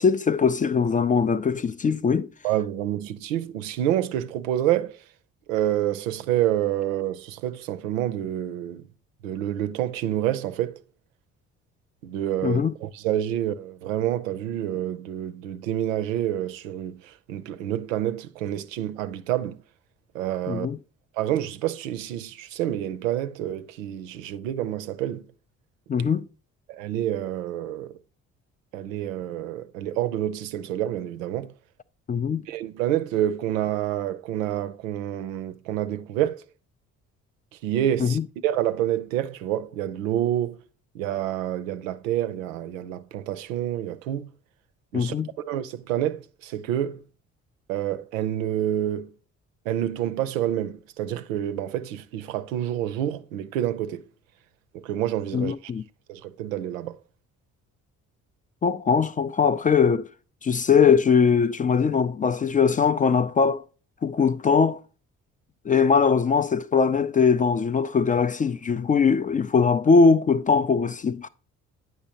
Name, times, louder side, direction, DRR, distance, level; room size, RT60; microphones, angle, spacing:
voice 1, 0.0-2.3 12.4-12.7 20.5-20.8 25.9-26.3 32.1-32.4 38.0-38.3 44.9-45.3 55.3-55.8 58.6-60.1 60.4-63.6 64.0-64.8 65.7-71.3, left 5 dB, 20° left, 0.3 m, -21 dB
voice 2, 2.4-5.0 5.5-8.9 9.2-10.8 12.0-19.6 20.1-20.7 21.2-25.3 26.0-26.1 26.7-27.9 28.7-31.5 32.5-36.4 37.6-40.6 40.9-44.3 44.9-47.0 47.7-49.1 49.7-54.0 54.7-55.5 56.1-57.0, right 12 dB, 80° right, 0.5 m, -28 dB
8.9 x 5.7 x 2.8 m
hypercardioid pair, 45°, 39 cm